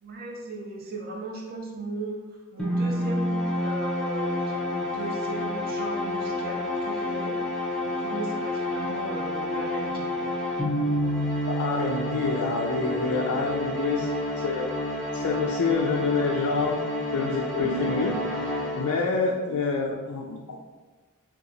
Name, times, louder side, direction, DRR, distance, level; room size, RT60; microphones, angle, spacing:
voice 1, 0.0-7.4 7.8-10.3, right 2 dB, 45° right, 0 dB, 0.6 m, -37 dB
sound 1, 2.6-19.3, left 1 dB, 5° left, 0.6 m, -29 dB
voice 2, 11.5-14.1 14.4-14.7 15.1-16.8 17.1-18.1 18.7-20.6, left 4 dB, 75° left, -1 dB, 0.4 m, -27 dB
2.8 x 2.3 x 3.8 m, 1.3 s
head